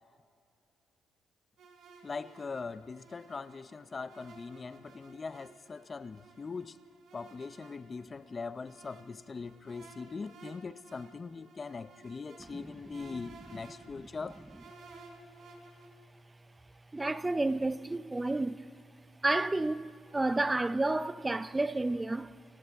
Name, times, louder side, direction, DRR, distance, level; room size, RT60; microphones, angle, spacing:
sound 1, 1.6-15.9, right 3 dB, 70° right, 4.0 m, -55 dB
voice 1, 2.0-6.8 7.1-14.4, left 4 dB, 35° left, 0.5 m, -41 dB
voice 2, 16.9-18.7 19.2-22.4, right 2 dB, 15° right, 0.5 m, -31 dB
29.5 x 28.0 x 3.5 m
cardioid pair, 90°, 0 cm